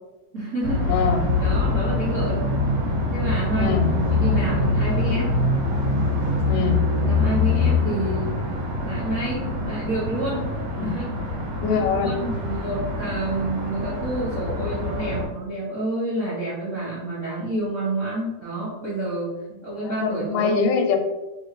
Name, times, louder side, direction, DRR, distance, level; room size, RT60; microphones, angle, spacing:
voice 1, 0.3-0.9 1.4-2.6 3.1-3.8 4.1-5.3 7.0-8.3 8.8-10.5 10.8-11.4 11.6-19.3 19.6-20.6, right 1 dB, 90° right, -10 dB, 0.6 m, -29 dB
sound 1, 0.6-15.2, left 2 dB, 60° right, 2.2 m, -24 dB
voice 2, 0.9-1.2 3.6-3.9 6.5-6.8 10.8-10.9 11.6-12.1 19.8-21.0, left 6 dB, 85° left, 4 dB, 2.0 m, -23 dB
4.9 x 2.4 x 3.3 m, 1.1 s
omnidirectional pair, 3.6 m